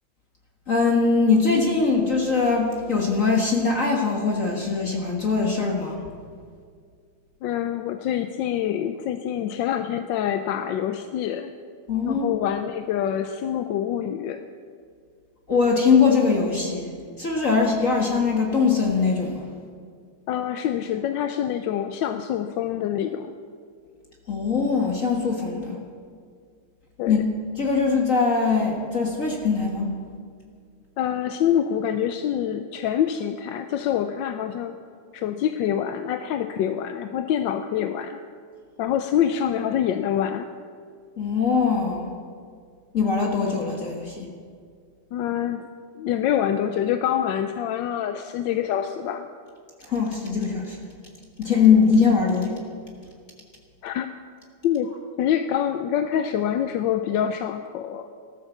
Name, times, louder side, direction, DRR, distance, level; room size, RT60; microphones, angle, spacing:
voice 1, 0.7-6.0 11.9-12.2 15.5-16.9 17.2-19.5 24.3-25.8 27.1-27.2 27.6-29.9 41.2-42.1 42.9-44.3 49.8-50.8 51.4-52.6, left 5 dB, 40° left, 0 dB, 1.8 m, -21 dB
voice 2, 7.4-11.5 12.1-14.4 20.3-23.3 27.0-27.2 31.0-34.8 35.1-38.2 38.8-40.5 45.1-45.6 45.9-49.3 53.8-54.1 54.6-54.9 55.2-58.1, left 10 dB, 70° left, 8 dB, 1.2 m, -26 dB
14.5 x 12.5 x 7.2 m, 2.1 s
omnidirectional pair, 2.3 m